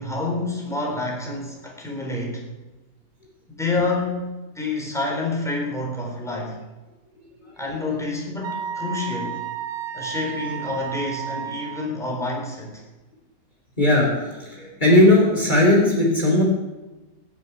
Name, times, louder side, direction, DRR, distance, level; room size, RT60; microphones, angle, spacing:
voice 1, 0.0-2.5 3.6-4.3 4.5-6.6 7.6-9.4 9.9-12.8, left 3 dB, ahead, -2 dB, 3.9 m, -28 dB
Wind instrument woodwind instrument, 8.4-11.9, right 8 dB, 85° right, 1.3 m, -32 dB
voice 2, 13.8-16.4, left 1 dB, 30° left, -2 dB, 3.3 m, -17 dB
20.0 x 7.1 x 9.3 m, 1.2 s
omnidirectional pair, 1.5 m